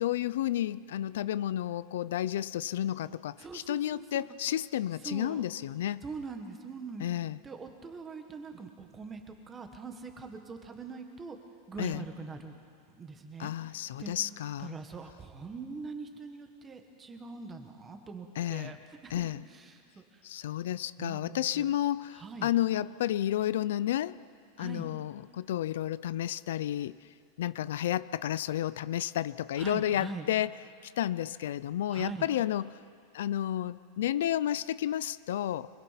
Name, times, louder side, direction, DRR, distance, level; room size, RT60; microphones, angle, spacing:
voice 1, 0.0-6.0 7.0-7.4 11.8-12.0 13.4-14.8 18.4-18.8 19.1-19.4 20.2-24.1 24.6-27.0 27.4-30.5 30.8-32.7 33.1-35.7, left 12 dB, 80° left, 18 dB, 0.5 m, -31 dB
voice 2, 3.4-4.3 5.0-5.4 6.0-7.0 7.4-11.4 11.7-12.5 13.0-13.5 14.0-14.1 14.6-18.8 19.0-20.2 21.0-21.7 22.1-22.5 24.6-24.9 29.6-30.3 31.9-32.3, right 4 dB, 15° right, 5 dB, 1.4 m, -42 dB
26.0 x 21.0 x 5.8 m, 2.2 s
supercardioid pair, 175°, 0 cm